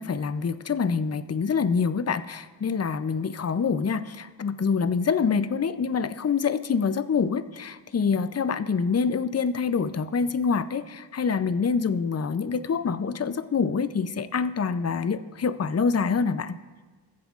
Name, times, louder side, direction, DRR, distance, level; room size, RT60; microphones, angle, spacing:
voice 1, 0.0-16.6, left 5 dB, 35° left, 13 dB, 0.4 m, -26 dB
22.0 x 7.4 x 2.4 m, 1.4 s
wide cardioid pair, 45°, 46 cm